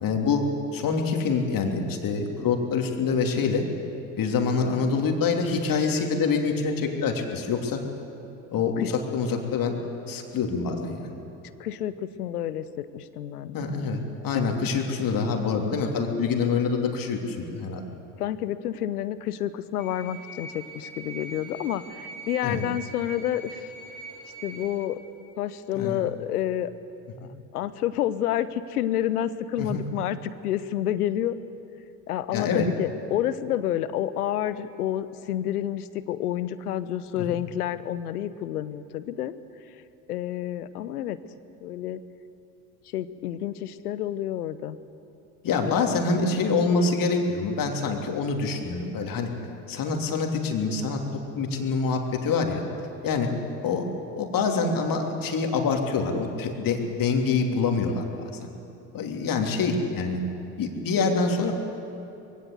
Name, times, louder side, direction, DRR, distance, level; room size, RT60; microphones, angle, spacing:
voice 1, 0.0-0.4 0.7-3.7 4.2-7.8 8.5-9.7 10.1-11.1 13.5-17.9 22.4-22.6 25.7-26.0 29.6-29.8 32.3-32.7 37.2-37.3 45.4-49.3 49.7-51.0 51.3-52.6 53.0-53.3 53.6-53.8 54.2-58.0 58.4-58.5 58.9-60.2 60.6-61.5, left 4 dB, 45° left, 3 dB, 3.1 m, -25 dB
voice 2, 11.6-13.7 18.2-23.7 24.4-25.0 25.4-26.7 27.5-31.4 32.1-39.3 40.1-41.2 41.6-42.0 42.9-44.8 45.7-45.8, left 11 dB, 80° left, 15 dB, 0.9 m, -29 dB
sound 1, 19.8-24.8, right 2 dB, 45° right, 7.2 m, -42 dB
22.0 x 17.0 x 8.1 m, 2.8 s
hypercardioid pair, 65°, 45 cm